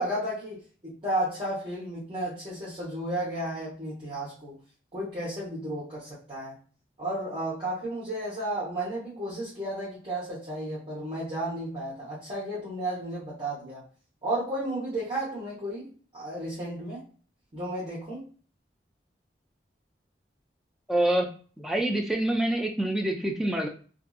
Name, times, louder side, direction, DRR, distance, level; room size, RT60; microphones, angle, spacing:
voice 1, 0.0-4.6 4.9-6.6 7.0-13.8 14.2-17.0 17.5-18.2, right 1 dB, 30° right, -10 dB, 1.0 m, -33 dB
voice 2, 20.9-21.3 21.6-23.7, right 1 dB, ahead, 2 dB, 0.3 m, -26 dB
2.6 x 2.6 x 2.3 m, 0.40 s
head